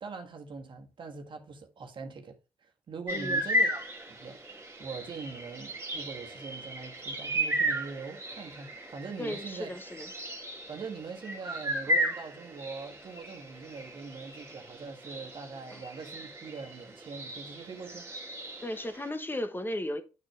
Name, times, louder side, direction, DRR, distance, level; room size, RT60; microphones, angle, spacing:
voice 1, 0.0-3.8 4.1-4.4 4.8-9.7 10.7-18.1, right 4 dB, 45° right, 1.6 m, -42 dB
voice 2, 3.1-3.4 9.2-10.1 15.7-15.8 18.6-20.0, left 1 dB, 20° left, 1.2 m, -35 dB
sound 1, 3.1-19.1, equal, 25° right, 2.2 m, -35 dB
9.1 x 5.8 x 3.4 m
hypercardioid pair, 45°, 11 cm